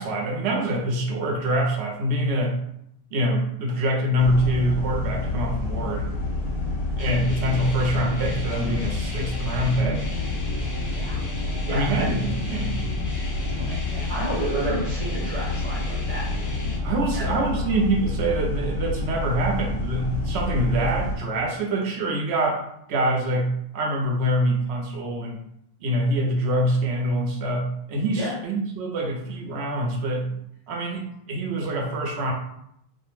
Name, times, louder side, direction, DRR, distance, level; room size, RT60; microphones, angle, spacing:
voice 1, 0.0-2.6 3.1-6.1 7.0-10.0 11.7-12.8 16.8-22.6 22.9-25.4 25.8-30.3 30.7-32.3, right 1 dB, 70° right, 0 dB, 0.9 m, -25 dB
sound 1, 4.2-21.2, left 2 dB, 85° left, 1.0 m, -28 dB
sound 2, 7.0-16.8, left 1 dB, 20° left, 0.5 m, -37 dB
voice 2, 10.9-11.2 11.6-12.2 13.5-16.3 17.1-17.3 28.1-28.3, right 1 dB, 35° right, -7 dB, 1.0 m, -31 dB
2.5 x 2.0 x 3.1 m, 0.74 s
omnidirectional pair, 1.2 m